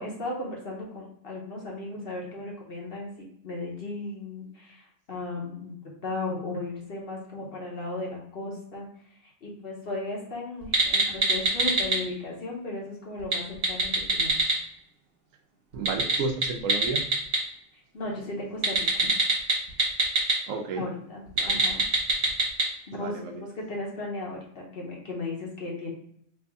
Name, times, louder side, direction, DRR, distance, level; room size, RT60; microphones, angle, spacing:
voice 1, 0.0-3.1 3.4-14.4 17.7-19.1 20.7-21.9 22.6-25.9, left 2 dB, 50° left, -2 dB, 0.9 m, -36 dB
sound 1, 10.6-12.0 13.2-14.6 15.7-17.4 18.6-20.3 21.3-22.7, right 2 dB, 45° right, 1.2 m, -23 dB
voice 2, 15.7-17.0 20.5-20.9 21.4-21.6 22.9-23.4, right 4 dB, 75° right, 3 dB, 0.9 m, -32 dB
3.2 x 2.6 x 3.4 m, 0.69 s
omnidirectional pair, 1.4 m